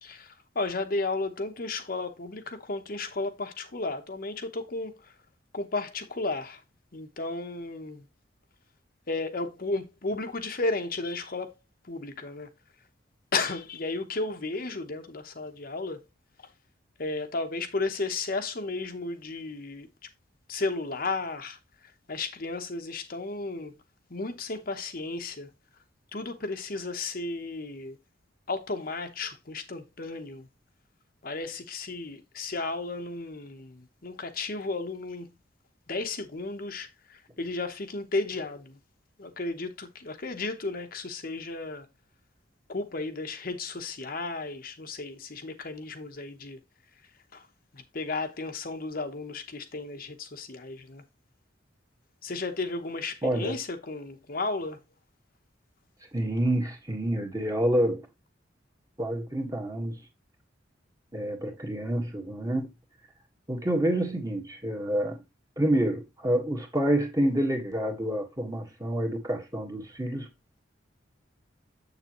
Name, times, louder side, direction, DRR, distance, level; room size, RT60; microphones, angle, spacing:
voice 1, 0.0-5.1 5.5-6.6 6.9-8.0 9.1-11.6 11.9-12.5 13.3-16.0 17.0-19.9 20.5-23.7 24.1-25.5 26.1-28.0 28.5-30.5 31.2-35.3 35.9-38.8 39.2-41.9 42.7-46.6 47.3-47.5 47.7-51.0 52.2-54.8, left 3 dB, 50° left, 1.0 m, -34 dB
voice 2, 53.2-53.5 56.1-58.1 59.0-60.0 61.1-62.7 63.5-65.2 65.6-70.3, right 1 dB, 20° right, 1.5 m, -28 dB
7.5 x 6.9 x 3.0 m
head